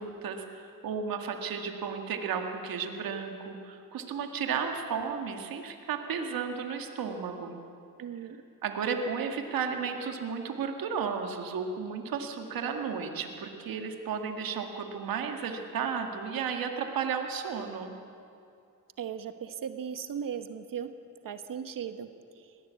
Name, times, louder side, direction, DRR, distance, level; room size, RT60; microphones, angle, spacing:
voice 1, 0.0-7.6 8.6-18.0, right 6 dB, 85° right, 4 dB, 1.9 m, -33 dB
voice 2, 8.0-8.4 19.0-20.9 21.2-22.1 22.4-22.5, right 8 dB, 70° right, 9 dB, 1.2 m, -37 dB
20.5 x 16.5 x 8.3 m, 2.5 s
cardioid pair, 85°, 34 cm